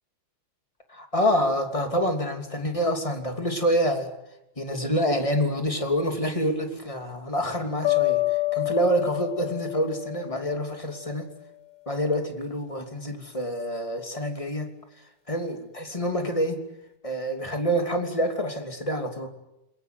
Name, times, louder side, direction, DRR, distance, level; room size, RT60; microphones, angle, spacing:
voice 1, 0.9-4.1 4.6-8.2 8.5-11.3 11.9-14.7 15.3-16.6 17.0-19.3, equal, 10° left, 4 dB, 2.4 m, -27 dB
sound 1, 7.8-10.9, left 20 dB, 40° left, 2.3 m, -27 dB
28.0 x 22.0 x 9.5 m, 0.89 s
omnidirectional pair, 4.3 m